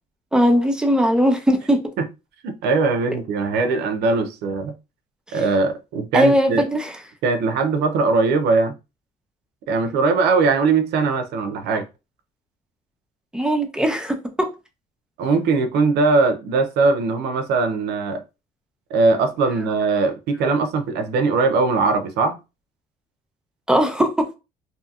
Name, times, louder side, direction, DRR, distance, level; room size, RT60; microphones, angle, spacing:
voice 1, 0.3-1.8 5.3-5.4 6.1-6.9 13.3-14.5 23.7-24.1, equal, 5° right, 0.6 m, -19 dB
voice 2, 2.4-4.7 5.3-6.7 7.2-8.7 9.7-11.8 15.2-18.2 18.9-22.4, right 4 dB, 80° right, 0.6 m, -20 dB
2.7 x 2.7 x 2.4 m
cardioid pair, 110°, 17 cm